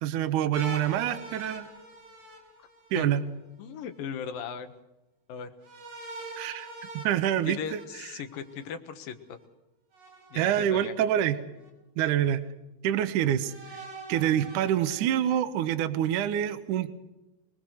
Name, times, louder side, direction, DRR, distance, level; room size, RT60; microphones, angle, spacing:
voice 1, 0.0-1.7 2.9-3.2 6.4-6.7 6.9-8.1 10.3-11.4 12.0-12.4 12.8-13.5 14.1-16.9, right 10 dB, 70° right, 9 dB, 2.3 m, -26 dB
sound 1, 0.5-3.2 5.6-8.6 9.9-10.9 11.6-11.7 13.4-15.4, right 1 dB, 45° right, 5.9 m, -44 dB
voice 2, 3.6-4.7 5.3-5.5 7.5-9.4 10.3-10.9, left 7 dB, 75° left, 9 dB, 3.0 m, -37 dB
23.5 x 21.0 x 6.4 m, 0.98 s
omnidirectional pair, 4.2 m